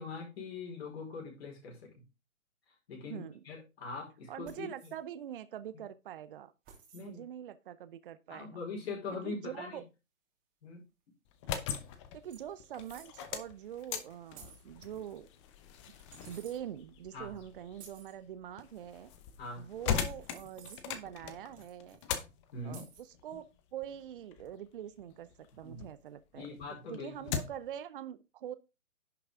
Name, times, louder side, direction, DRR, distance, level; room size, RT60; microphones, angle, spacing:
voice 1, 0.0-1.9 2.9-4.9 6.9-7.2 8.3-9.8 10.6-10.8 17.1-17.4 19.4-19.7 22.5-22.8 25.6-25.8 26.3-27.3, left 4 dB, 45° left, 5.0 m, -42 dB
voice 2, 3.1-3.4 4.3-6.5 7.0-8.6 9.2-9.8 12.1-15.3 16.3-19.1 19.6-22.0 22.6-23.5 23.7-26.5 26.9-28.5, right 10 dB, 40° right, 0.7 m, -44 dB
sound 1, 4.4-5.0 6.6-7.1 9.1-9.2 11.4-11.5 11.8-11.9 12.3-13.2 14.3-14.7 15.9-16.6 17.7-18.1 19.9-21.0 21.5-22.1 22.7-23.1, right 6 dB, 20° right, 2.8 m, -56 dB
sound 2, 11.2-26.0 26.4-27.7, left 8 dB, 20° left, 0.9 m, -41 dB
11.0 x 6.2 x 3.7 m
figure-of-eight pair, 135°, 41 cm